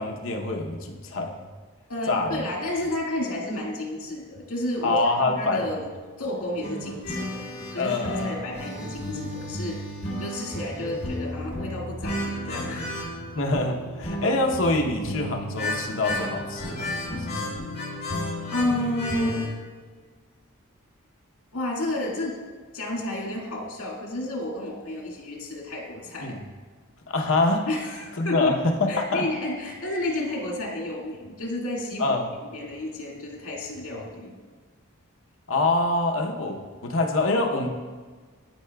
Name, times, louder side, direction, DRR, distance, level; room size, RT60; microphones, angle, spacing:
voice 1, 0.0-1.3 2.1-2.5 4.8-5.8 7.8-8.4 13.3-17.4 26.2-26.4 27.1-27.7 28.2-29.2 32.0-32.3 35.5-37.7, left 2 dB, 65° left, 2 dB, 0.8 m, -25 dB
voice 2, 1.9-5.9 6.2-9.8 10.2-13.1 18.0-18.2 18.5-19.4 21.5-22.4 22.7-26.4 27.7-28.6 28.9-32.2 32.4-34.3, left 1 dB, 85° left, -2 dB, 1.8 m, -31 dB
sound 1, 6.6-19.5, left 1 dB, 50° left, 1.5 m, -33 dB
12.0 x 4.8 x 2.3 m, 1.5 s
head